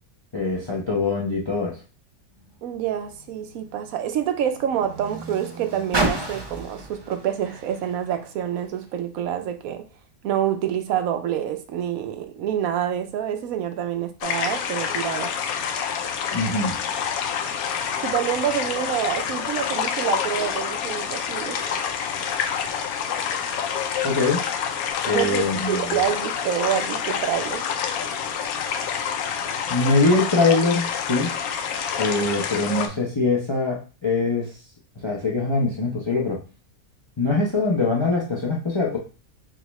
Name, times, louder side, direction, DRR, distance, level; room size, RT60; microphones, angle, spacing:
voice 1, 0.3-1.8 16.3-16.8 24.0-24.4 25.1-26.0 29.7-31.3 32.0-34.5 35.0-36.4 37.2-39.0, left 3 dB, 40° left, -2 dB, 0.4 m, -23 dB
Car, 2.3-8.9 9.7-9.8, right 2 dB, 30° right, 0.5 m, -33 dB
voice 2, 2.6-9.9 10.2-15.3 18.0-21.6 25.1-27.7, right 10 dB, 75° right, 7 dB, 1.0 m, -27 dB
sound 1, 14.2-32.9, left 7 dB, 80° left, 1.0 m, -27 dB
6.3 x 2.3 x 3.1 m, 0.35 s
omnidirectional pair, 1.5 m